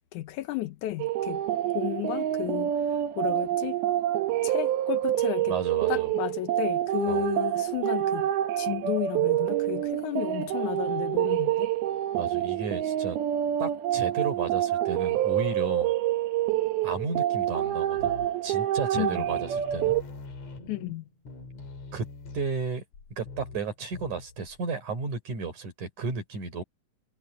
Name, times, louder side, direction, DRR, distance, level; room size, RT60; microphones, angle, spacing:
voice 1, 0.1-1.4 1.7-3.8 4.4-5.6 5.9-8.3 8.6-11.7 19.0-19.3 20.7-21.1, left 15 dB, 80° left, 1.8 m, -33 dB
sound 1, 1.0-20.0, right 12 dB, 80° right, 3.2 m, -27 dB
voice 2, 5.5-6.1 7.1-7.3 12.1-13.2 13.6-15.9 16.8-18.1 18.4-19.9 21.9-22.1 22.3-22.8 23.2-26.6, right 4 dB, 50° right, 6.3 m, -33 dB
sound 2, 18.0-18.6 18.9-19.0 19.3-24.6, left 4 dB, 45° left, 4.2 m, -44 dB
omnidirectional pair, 4.4 m